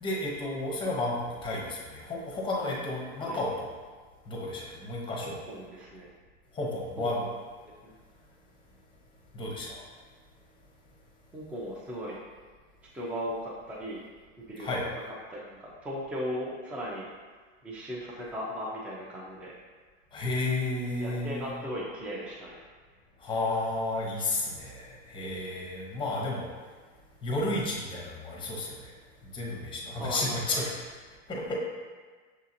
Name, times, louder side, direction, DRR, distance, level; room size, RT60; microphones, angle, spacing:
voice 1, 0.0-3.7 4.3-5.4 6.5-7.2 9.3-9.9 14.6-14.8 20.1-21.5 23.2-26.5 27.2-28.9 29.2-30.6 31.3-31.6, left 2 dB, 15° left, -3 dB, 0.7 m, -32 dB
voice 2, 5.2-6.1 7.0-7.3 7.8-7.9 11.3-12.2 12.9-14.0 14.4-14.8 15.1-17.1 17.6-19.5 21.0-22.6 30.0-30.6, equal, 5° right, -4 dB, 0.3 m, -37 dB
6.3 x 2.7 x 2.5 m, 1.5 s
supercardioid pair, 145°, 33 cm